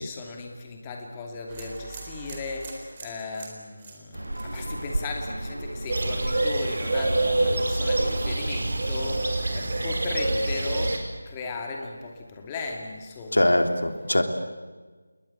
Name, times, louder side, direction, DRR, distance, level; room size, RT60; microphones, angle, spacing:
voice 1, 0.0-13.6, left 3 dB, 15° left, 2 dB, 2.6 m, -36 dB
sound 1, 1.5-5.5 5.8-6.3, right 4 dB, 25° right, 4.2 m, -43 dB
sound 2, 4.1-9.2, right 1 dB, 80° right, 2.3 m, -34 dB
sound 3, 5.9-11.0, right 2 dB, 55° right, 5.0 m, -26 dB
voice 2, 13.3-14.2, left 1 dB, 80° left, 7 dB, 3.1 m, -22 dB
28.5 x 21.5 x 8.5 m, 1.3 s
figure-of-eight pair, 165°, 0 cm